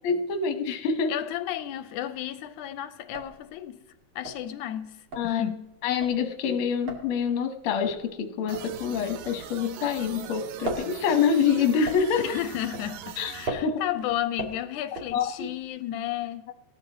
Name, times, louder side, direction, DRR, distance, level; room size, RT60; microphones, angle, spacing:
voice 1, 0.0-1.2 5.1-5.4 5.8-12.3 13.2-13.8 15.1-15.5, left 6 dB, 60° left, 1.7 m, -26 dB
voice 2, 1.1-3.8 4.2-5.7 12.2-16.5, left 11 dB, 90° left, 2.2 m, -33 dB
sound 1, 1.9-2.3 2.6-2.7 3.0-10.0 10.3-15.7, right 2 dB, 45° right, 2.5 m, -38 dB
sound 2, 8.5-13.5, right 10 dB, 75° right, 1.6 m, -41 dB
18.0 x 13.0 x 2.9 m
omnidirectional pair, 3.5 m